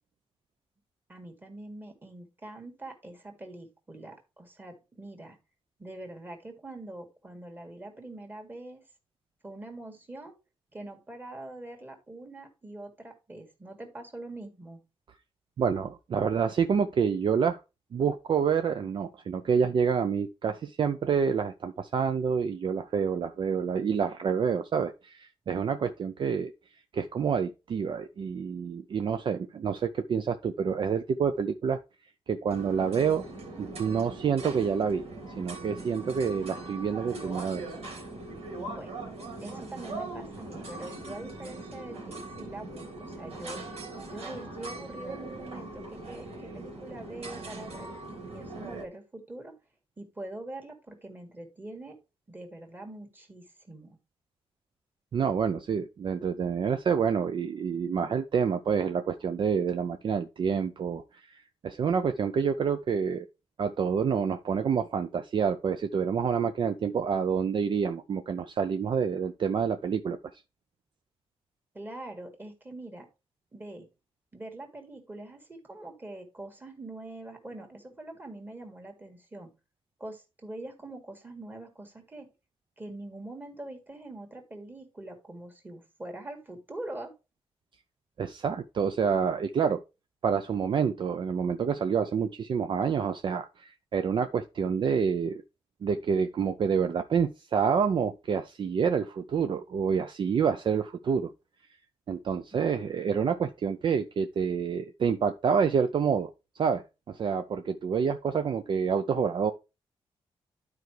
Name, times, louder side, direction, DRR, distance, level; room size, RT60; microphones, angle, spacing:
voice 1, 1.1-5.4 5.8-8.8 9.4-10.3 10.7-14.8 38.7-39.0 39.4-43.6 44.0-49.5 50.0-52.0 52.3-54.0 71.7-73.1 73.5-73.9 74.3-79.5 80.0-82.3 82.8-87.1 102.5-102.6, right 2 dB, 20° right, 1.9 m, -43 dB
voice 2, 15.6-17.6 17.9-26.5 26.9-31.8 32.3-33.2 33.6-35.0 35.4-37.6 55.1-63.3 63.6-70.2 88.2-89.8 90.2-95.4 95.8-101.3 102.1-106.3 106.6-109.5, right 6 dB, 50° right, 0.5 m, -28 dB
sound 1, 32.5-48.8, right 2 dB, 75° right, 3.0 m, -41 dB
11.5 x 4.7 x 3.3 m
wide cardioid pair, 160°, 10 cm